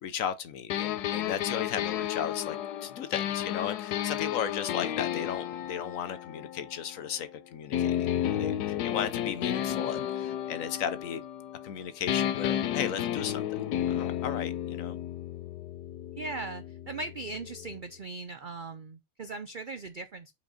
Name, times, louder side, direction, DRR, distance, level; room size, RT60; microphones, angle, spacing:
voice 1, 0.0-11.2 11.6-13.4 13.9-15.0, left 8 dB, 65° left, 1.1 m, -35 dB
sound 1, 0.7-7.2 7.7-11.8 12.1-17.8, left 11 dB, 85° left, 1.2 m, -32 dB
voice 2, 16.1-20.3, right 3 dB, 70° right, 0.4 m, -39 dB
5.3 x 5.0 x 5.0 m
omnidirectional pair, 1.6 m